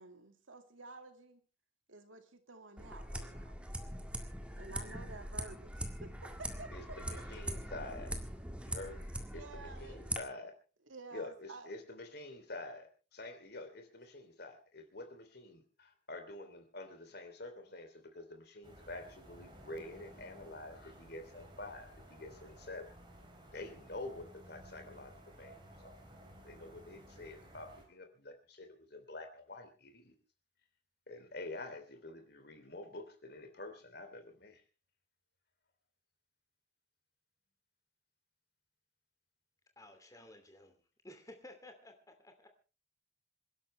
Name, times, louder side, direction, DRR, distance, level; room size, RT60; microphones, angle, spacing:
voice 1, 0.0-1.4 1.9-3.6 4.6-6.7 9.3-10.0 10.9-11.7, right 3 dB, 85° right, 7 dB, 2.2 m, -51 dB
sound 1, 2.8-10.2, right 1 dB, 5° right, 1.8 m, -42 dB
voice 2, 6.7-8.1 8.6-10.5 11.1-22.9 23.5-25.9 26.4-30.1 31.1-34.6, left 2 dB, 55° left, 6 dB, 3.1 m, -48 dB
sound 2, 18.6-27.8, right 1 dB, 25° right, 4.0 m, -56 dB
voice 3, 39.8-40.8 41.0-42.5, left 1 dB, 15° left, 6 dB, 2.7 m, -54 dB
27.5 x 11.5 x 3.3 m, 0.34 s
head